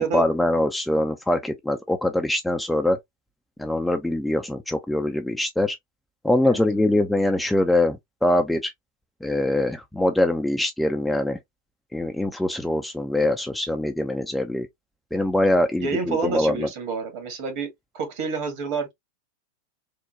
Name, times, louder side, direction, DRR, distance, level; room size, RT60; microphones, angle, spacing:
voice 1, 0.0-3.0 3.6-5.8 6.2-8.7 9.2-11.4 11.9-14.7 15.1-16.7, left 1 dB, 5° left, 0.4 m, -23 dB
voice 2, 15.8-18.9, right 4 dB, 45° right, 1.4 m, -28 dB
3.6 x 2.2 x 2.6 m
figure-of-eight pair, 90°, 0 cm